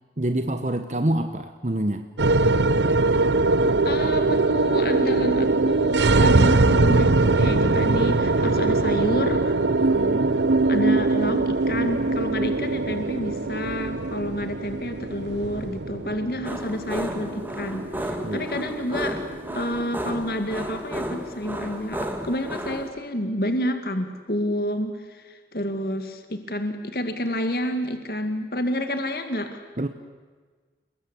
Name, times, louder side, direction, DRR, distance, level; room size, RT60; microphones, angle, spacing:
voice 1, 0.2-2.1 9.8-10.4 18.2-18.5 29.8-29.9, right 1 dB, 40° right, 8 dB, 1.1 m, -27 dB
sound 1, 2.2-20.6, right 3 dB, 90° right, 0.9 m, -22 dB
voice 2, 3.8-9.6 10.7-19.2 19.5-29.6, left 1 dB, 55° left, 7 dB, 2.3 m, -29 dB
sound 2, 16.4-22.9, equal, 10° right, 2.2 m, -33 dB
30.0 x 21.5 x 8.6 m, 1.5 s
head